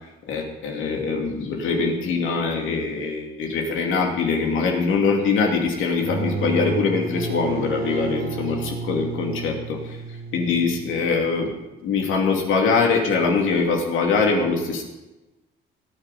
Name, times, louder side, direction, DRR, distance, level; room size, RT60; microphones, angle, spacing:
voice 1, 0.3-10.0 10.3-14.8, left 4 dB, 80° left, 1 dB, 2.8 m, -23 dB
sound 1, 5.9-11.5, right 4 dB, 45° right, 1.7 m, -32 dB
17.5 x 10.0 x 4.3 m, 1.0 s
cardioid pair, 90°, 20 cm